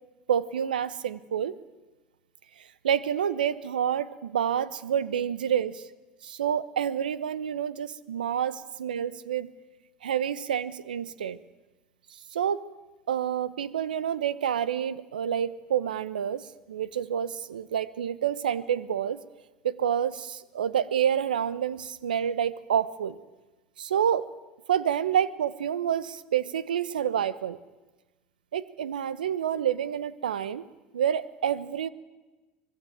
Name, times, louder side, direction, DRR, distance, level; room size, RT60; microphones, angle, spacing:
voice 1, 0.3-1.5 2.8-5.8 6.2-9.5 10.0-11.4 12.3-12.6 13.1-19.2 19.6-23.2 23.8-24.3 24.7-27.6 28.5-30.7 30.9-31.9, right 9 dB, 85° right, 17 dB, 0.9 m, -28 dB
24.5 x 20.5 x 8.8 m, 1.2 s
hypercardioid pair, 75°, 5 cm